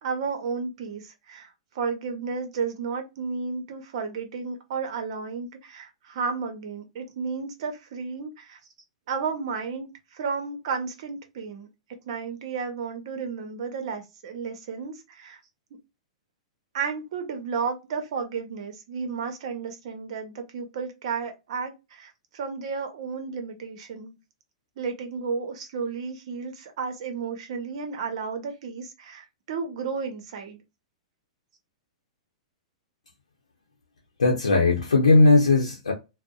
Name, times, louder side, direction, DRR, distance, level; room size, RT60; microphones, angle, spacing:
voice 1, 0.0-8.6 9.1-11.7 12.1-15.4 16.7-24.1 24.8-30.6, right 5 dB, 60° right, 0.8 m, -33 dB
voice 2, 34.2-35.9, left 3 dB, 90° left, 0.6 m, -18 dB
2.6 x 2.1 x 2.3 m
hypercardioid pair, 115°, 3 cm